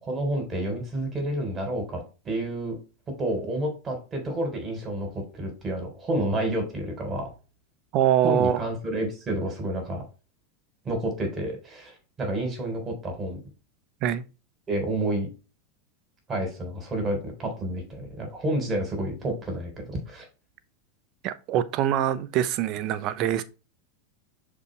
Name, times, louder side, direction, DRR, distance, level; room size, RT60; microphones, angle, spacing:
voice 1, 0.0-2.8 3.2-7.3 8.2-10.0 10.8-13.4 14.7-15.3 16.3-20.3, right 1 dB, 20° right, 3.7 m, -29 dB
voice 2, 7.9-8.6 14.0-14.2 21.2-23.4, right 10 dB, 45° right, 0.8 m, -24 dB
6.7 x 5.2 x 3.3 m
supercardioid pair, 130°, 0 cm